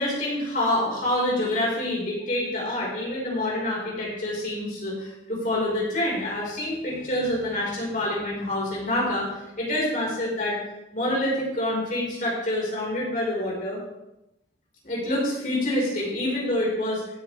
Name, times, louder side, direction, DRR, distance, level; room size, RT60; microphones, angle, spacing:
voice 1, 0.0-10.6 10.9-13.8 14.8-17.0, left 1 dB, 45° left, -5 dB, 5.5 m, -27 dB
15.5 x 9.8 x 3.7 m, 0.92 s
head